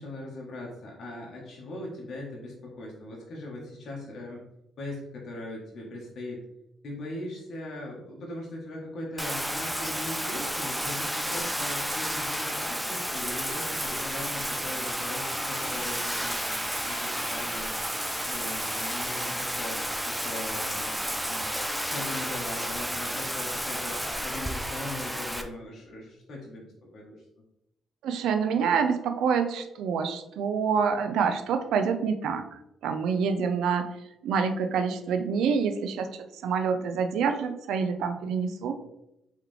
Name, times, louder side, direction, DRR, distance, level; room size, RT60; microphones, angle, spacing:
voice 1, 0.0-4.4 4.8-6.4 6.8-16.6 16.9-17.7 18.3-19.8 20.0-21.5 21.9-26.7 26.9-27.2, left 1 dB, 60° left, -3 dB, 1.1 m, -40 dB
Bathtub (filling or washing), 9.2-25.4, equal, 5° right, 0.4 m, -31 dB
voice 2, 28.0-32.5 32.8-33.9 34.2-36.1 36.4-38.8, right 6 dB, 80° right, 8 dB, 0.4 m, -26 dB
3.6 x 3.2 x 3.3 m, 0.86 s
cardioid pair, 90°, 0 cm